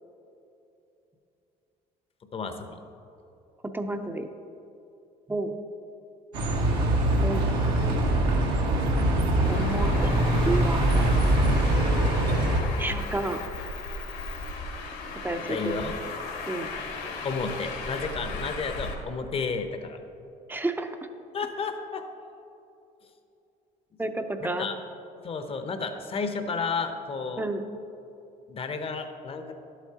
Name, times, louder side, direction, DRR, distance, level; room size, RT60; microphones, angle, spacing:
voice 1, 2.3-2.8 15.5-15.9 17.2-20.0 21.3-22.0 24.4-24.8 25.2-27.4 28.5-29.5, left 4 dB, 35° left, 7 dB, 0.7 m, -32 dB
voice 2, 3.7-4.3 5.3-5.6 7.2-7.5 9.5-10.1 10.4-10.8 12.8-13.4 15.2-15.8 16.5-16.7 20.5-21.0 24.0-24.7 27.4-27.6, right 2 dB, 10° right, 7 dB, 0.6 m, -30 dB
Bus, 6.3-12.6, right 1 dB, 85° right, 1.5 m, -23 dB
Traffic noise roadway noise, 9.4-18.9, left 3 dB, 75° left, 1.5 m, -36 dB
11.0 x 8.1 x 2.9 m, 2.8 s
cardioid pair, 110°, 17 cm